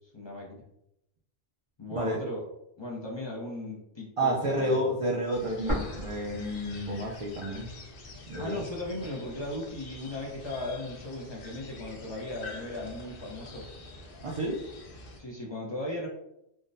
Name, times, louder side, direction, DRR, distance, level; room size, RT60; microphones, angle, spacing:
voice 1, 0.1-0.6 1.8-2.4 2.8-4.9 8.4-13.6 15.2-16.1, left 1 dB, 35° left, -4 dB, 0.5 m, -37 dB
voice 2, 4.2-7.7 8.3-8.6 14.2-14.6, right 1 dB, 50° right, -3 dB, 0.4 m, -30 dB
sound 1, 5.3-15.2, left 2 dB, 65° left, 0.7 m, -46 dB
sound 2, 5.7-7.6 7.9-8.0 8.7-9.7, equal, 30° right, 1.0 m, -36 dB
3.5 x 2.1 x 2.5 m, 0.83 s
omnidirectional pair, 1.1 m